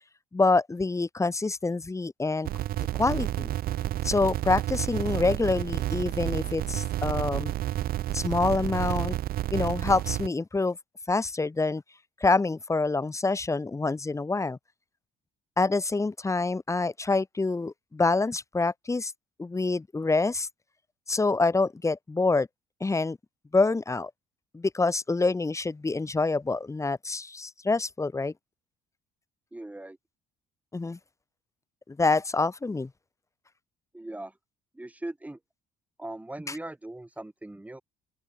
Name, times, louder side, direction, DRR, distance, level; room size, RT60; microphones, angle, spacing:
voice 1, 0.3-2.5 2.8-3.5 4.0-7.5 8.1-9.2 9.5-10.8 11.1-11.8 12.2-14.6 15.6-19.1 19.4-20.5 21.1-22.5 22.8-23.2 23.5-24.1 24.5-28.3 30.7-31.0 32.0-32.9 36.5-36.6, left 3 dB, 15° left, 4.7 m, -26 dB
sound 1, 2.4-10.3, right 13 dB, 65° right, 1.1 m, -30 dB
voice 2, 29.5-30.0 33.9-34.3 34.8-35.4 36.0-37.8, right 1 dB, 10° right, 3.8 m, -39 dB
open air
cardioid pair, 110°, 17 cm